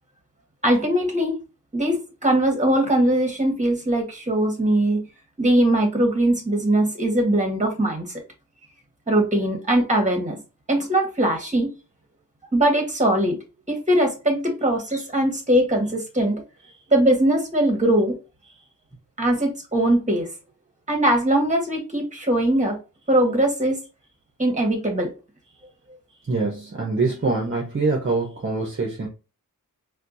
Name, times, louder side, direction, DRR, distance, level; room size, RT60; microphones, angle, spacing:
voice 1, 0.6-1.4 1.7-5.0 5.4-8.2 9.1-10.4 10.7-11.7 12.5-13.4 13.7-16.4 16.9-18.2 19.2-20.3 20.9-22.8 23.1-23.8 24.4-25.1, right 1 dB, 20° right, 2 dB, 1.3 m, -21 dB
voice 2, 26.3-29.1, right 3 dB, 35° right, 0 dB, 0.9 m, -24 dB
4.3 x 2.4 x 2.6 m, 0.30 s
wide cardioid pair, 75°, 33 cm